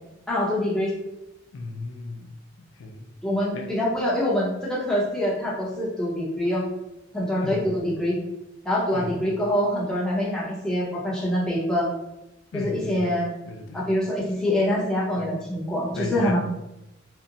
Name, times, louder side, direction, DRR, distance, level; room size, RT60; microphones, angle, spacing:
voice 1, 0.3-0.9 3.2-6.6 7.1-8.2 8.6-11.9 12.5-13.3 13.7-16.4, left 1 dB, 5° left, -6 dB, 0.6 m, -25 dB
voice 2, 1.5-3.1 3.5-3.7 7.4-7.7 8.9-9.2 12.5-13.1 13.5-13.9 15.2-15.5 15.9-16.4, left 2 dB, 80° left, 4 dB, 0.3 m, -35 dB
2.7 x 2.0 x 2.5 m, 0.89 s
head